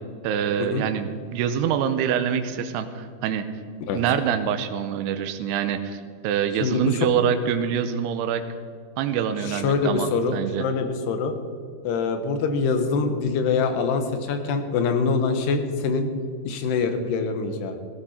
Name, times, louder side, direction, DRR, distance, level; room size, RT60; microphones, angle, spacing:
voice 1, 0.2-3.5 3.9-8.4 9.0-10.6, right 8 dB, 85° right, 8 dB, 2.7 m, -25 dB
voice 2, 6.6-7.0 9.5-11.3 11.8-16.1 16.4-17.7, left 4 dB, 90° left, 7 dB, 3.2 m, -24 dB
15.5 x 14.5 x 4.3 m, 2.1 s
omnidirectional pair, 4.7 m